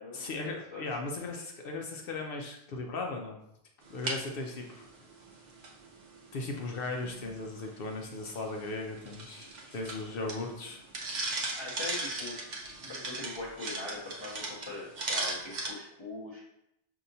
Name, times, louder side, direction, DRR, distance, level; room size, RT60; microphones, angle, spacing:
voice 1, 0.1-3.4 3.9-4.9 6.3-10.8, left 3 dB, 65° left, 2 dB, 0.7 m, -37 dB
Tapping rattling and scratching, 3.8-15.7, right 2 dB, 50° right, 0.7 m, -39 dB
voice 2, 11.6-12.4 12.8-16.4, left 2 dB, 30° left, -8 dB, 0.7 m, -41 dB
5.4 x 2.7 x 2.6 m, 0.79 s
omnidirectional pair, 1.1 m